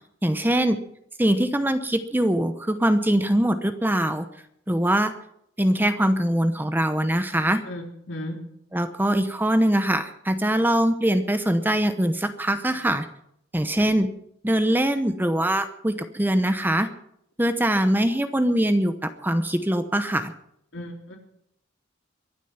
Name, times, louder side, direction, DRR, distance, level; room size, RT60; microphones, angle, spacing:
voice 1, 0.2-0.8 1.2-4.3 4.7-5.1 5.6-7.6 8.7-13.1 13.5-14.1 14.4-16.9 17.4-20.3, right 1 dB, 10° right, 9 dB, 0.9 m, -22 dB
voice 2, 7.7-8.4 20.7-21.2, left 1 dB, 65° left, 1 dB, 3.6 m, -35 dB
23.5 x 8.2 x 5.8 m, 0.72 s
head